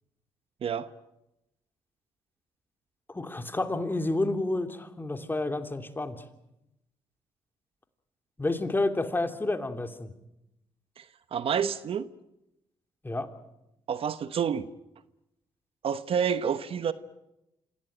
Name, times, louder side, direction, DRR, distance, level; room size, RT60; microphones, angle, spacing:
voice 1, 3.1-6.2 8.4-10.1 13.0-13.3, left 2 dB, 20° left, 7 dB, 2.7 m, -30 dB
voice 2, 11.3-12.1 13.9-14.7 15.8-16.9, right 7 dB, 60° right, 13 dB, 1.1 m, -28 dB
26.5 x 17.0 x 9.1 m, 0.89 s
supercardioid pair, 65°, 11 cm